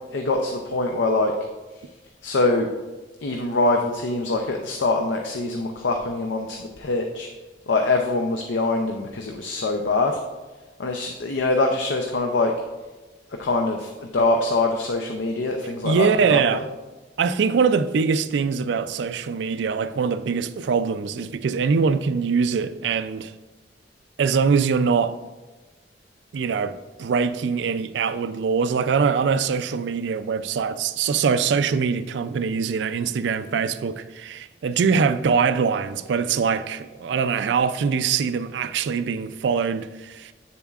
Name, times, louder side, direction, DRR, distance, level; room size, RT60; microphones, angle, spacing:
voice 1, 0.1-1.3 2.2-2.7 3.2-7.3 7.7-10.2 10.8-12.5 13.4-16.6, left 2 dB, 80° left, 0.6 m, -24 dB
voice 2, 15.8-16.6 17.2-23.3 24.2-25.2 26.3-40.3, right 5 dB, 70° right, 0.4 m, -23 dB
8.1 x 7.0 x 2.4 m
head